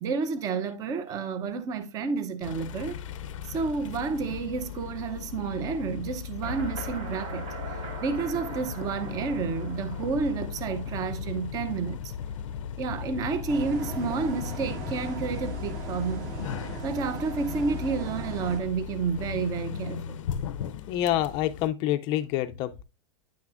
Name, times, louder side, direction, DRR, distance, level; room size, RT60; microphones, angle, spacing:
voice 1, 0.0-3.0 3.4-7.5 8.0-12.1 12.8-16.3 16.8-20.2, right 5 dB, 20° right, 0.6 m, -30 dB
sound 1, 2.4-21.7, left 8 dB, 80° left, 0.5 m, -37 dB
sound 2, 6.4-11.4, right 2 dB, 75° right, 2.6 m, -41 dB
sound 3, 13.5-18.6, right 4 dB, 40° right, 1.9 m, -38 dB
voice 2, 20.9-22.8, left 13 dB, 30° left, 0.4 m, -27 dB
9.9 x 5.9 x 2.5 m
supercardioid pair, 160°, 16 cm